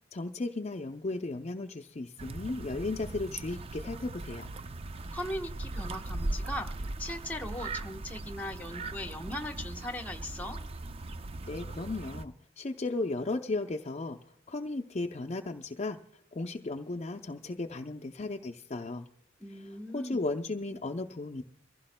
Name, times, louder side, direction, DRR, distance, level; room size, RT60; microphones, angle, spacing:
voice 1, 0.1-4.5 11.5-14.2 14.5-16.0 16.3-19.1 19.9-21.4, left 2 dB, 35° left, 4 dB, 0.5 m, -35 dB
sound 1, 2.2-12.3, right 2 dB, 30° right, 0.4 m, -39 dB
voice 2, 5.1-10.6 19.4-20.2, left 1 dB, 10° left, 5 dB, 1.1 m, -39 dB
24.5 x 15.5 x 2.2 m, 0.73 s
head